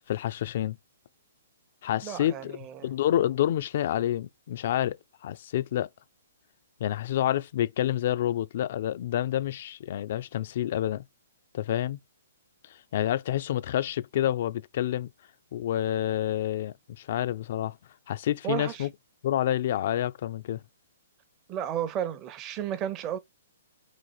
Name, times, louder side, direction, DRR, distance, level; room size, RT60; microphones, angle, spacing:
voice 1, 0.1-0.8 1.8-2.6 2.8-5.0 5.2-5.9 6.8-11.0 11.5-12.0 12.9-15.1 15.5-17.8 18.1-18.9 19.2-20.6, left 12 dB, 50° left, 0.3 m, -28 dB
voice 2, 2.0-2.9 18.4-18.9 21.5-23.2, right 10 dB, 25° right, 0.6 m, -33 dB
4.0 x 2.5 x 4.6 m
hypercardioid pair, 145°, 0 cm